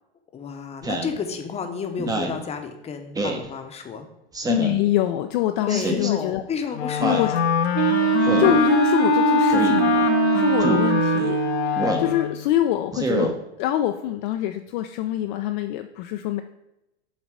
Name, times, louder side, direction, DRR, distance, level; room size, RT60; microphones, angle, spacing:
voice 1, 0.3-4.1 5.6-7.5, left 6 dB, 20° left, 6 dB, 0.8 m, -31 dB
Speech synthesizer, 0.8-1.1 2.0-2.4 3.1-3.4 4.3-4.8 5.7-6.1 7.0-7.3 8.2-8.6 9.5-9.8 10.6-10.9 11.8-12.1 12.9-13.3, right 2 dB, 10° right, 0.8 m, -26 dB
voice 2, 4.5-6.4 7.0-7.3 8.4-16.4, left 13 dB, 45° left, 6 dB, 0.5 m, -25 dB
Wind instrument woodwind instrument, 6.7-12.5, left 10 dB, 75° left, 0.8 m, -23 dB
Wind instrument woodwind instrument 2, 7.7-11.8, right 13 dB, 45° right, 0.7 m, -22 dB
7.3 x 4.0 x 4.7 m, 0.89 s
hypercardioid pair, 110°, 33 cm